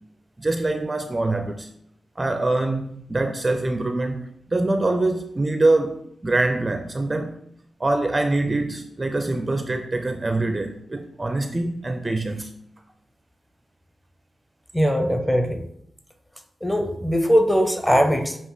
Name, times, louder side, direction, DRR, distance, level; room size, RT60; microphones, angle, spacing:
voice 1, 0.4-1.7 2.2-7.4 7.8-12.6, right 2 dB, 25° right, 7 dB, 0.5 m, -24 dB
voice 2, 14.7-15.6 16.6-18.4, equal, 5° left, 6 dB, 0.7 m, -20 dB
7.2 x 2.9 x 4.9 m, 0.70 s
wide cardioid pair, 110°, 0 cm